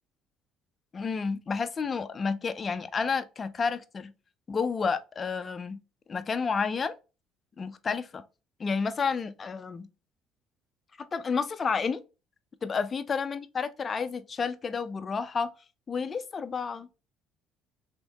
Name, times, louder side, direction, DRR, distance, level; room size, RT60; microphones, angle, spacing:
voice 1, 0.9-4.1 4.5-5.8 6.1-7.0 7.6-8.2 8.6-9.9 11.0-12.0 12.6-15.5 15.9-16.9, left 5 dB, 25° left, 0.3 m, -30 dB
3.4 x 2.6 x 2.7 m
cardioid pair, 135°, 0 cm